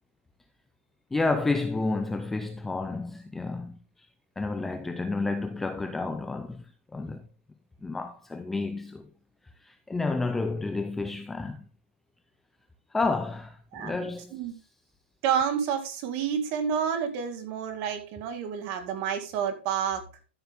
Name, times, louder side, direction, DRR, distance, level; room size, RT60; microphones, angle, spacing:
voice 1, 1.1-4.1 4.4-7.2 7.8-9.1 9.6-11.7 12.9-14.3, left 3 dB, 5° left, 0.4 m, -30 dB
voice 2, 15.2-20.0, right 8 dB, 25° right, 1.9 m, -29 dB
13.0 x 7.1 x 3.5 m
hypercardioid pair, 170°, 6 cm